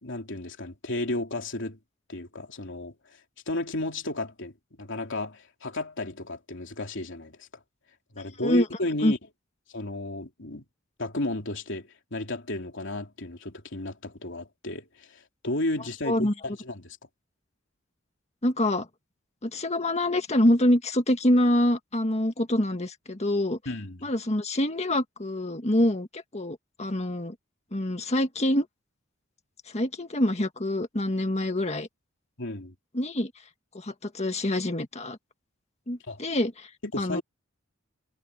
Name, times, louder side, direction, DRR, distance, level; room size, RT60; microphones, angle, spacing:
voice 1, 0.0-1.8 2.1-2.9 3.5-7.5 8.1-9.2 9.7-10.6 11.0-17.0 23.6-24.1 32.4-32.7 36.1-36.2 36.8-37.2, left 2 dB, 65° left, 3.3 m, -33 dB
voice 2, 18.4-18.9 19.4-23.6 24.0-27.4 27.7-28.7 29.7-31.9 32.9-33.3 33.7-35.2 35.9-36.7 37.0-37.2, left 1 dB, 35° left, 1.8 m, -25 dB
head